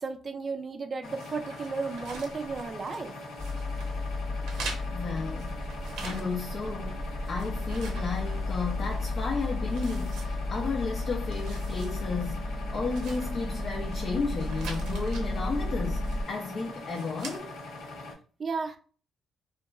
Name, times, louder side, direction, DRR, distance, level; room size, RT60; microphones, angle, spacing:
voice 1, 0.0-3.2 18.4-18.8, right 4 dB, 40° right, 0.3 m, -34 dB
sound 1, 1.0-18.1, left 2 dB, 85° left, 0.7 m, -42 dB
sound 2, 1.2-3.1 3.4-3.9 4.4-6.6 6.9-8.8 9.2-9.3 9.7-10.8 11.2-12.0 12.3-12.4 12.8-14.0 14.4-15.2 16.0-16.4 16.8-17.4, right 3 dB, 90° right, 0.7 m, -44 dB
sound 3, 3.4-16.2, left 2 dB, 10° left, 0.6 m, -33 dB
voice 2, 4.9-5.6 6.0-12.4 12.7-17.5, left 4 dB, 50° left, 0.4 m, -33 dB
2.8 x 2.2 x 2.3 m
cardioid pair, 90°, 0 cm